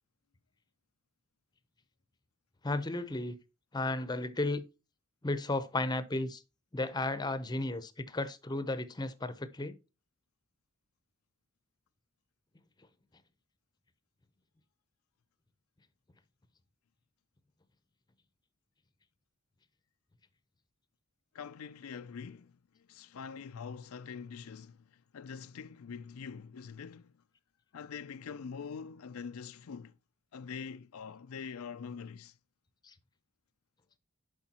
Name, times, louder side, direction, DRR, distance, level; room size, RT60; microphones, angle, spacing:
voice 1, 2.6-3.4 3.7-4.6 5.2-6.4 6.7-9.8 32.8-32.9, left 2 dB, 20° left, 0.7 m, -34 dB
voice 2, 21.3-27.1 27.7-29.9 30.3-32.4, left 6 dB, 85° left, 0.4 m, -44 dB
11.0 x 5.0 x 2.9 m
head